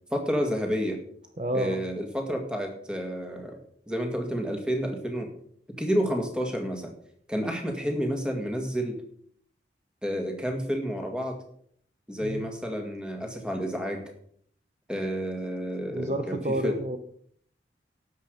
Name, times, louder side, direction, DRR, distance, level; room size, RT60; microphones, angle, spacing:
voice 1, 0.1-1.0 1.5-3.6 3.9-5.3 5.8-6.9 7.3-9.0 10.0-11.4 12.1-14.0 14.9-16.8, equal, 5° right, 3 dB, 2.0 m, -30 dB
voice 2, 1.4-1.8 12.2-12.5 15.9-17.0, right 1 dB, 40° right, 7 dB, 0.8 m, -29 dB
12.5 x 8.4 x 5.2 m, 0.63 s
head